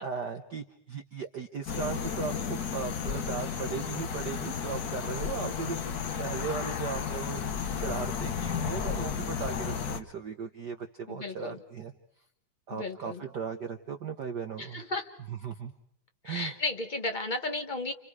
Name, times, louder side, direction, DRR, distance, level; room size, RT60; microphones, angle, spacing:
voice 1, 0.0-5.8 6.2-11.9 12.7-14.8 15.3-15.7 16.2-16.5, right 6 dB, 65° right, 6 dB, 1.0 m, -37 dB
sound 1, 1.7-10.0, left 7 dB, 75° left, 0.8 m, -33 dB
voice 2, 11.1-11.6 12.7-13.2 14.6-15.1 16.2-17.9, left 2 dB, 35° left, 5 dB, 0.7 m, -34 dB
30.0 x 29.5 x 4.9 m, 0.72 s
omnidirectional pair, 3.4 m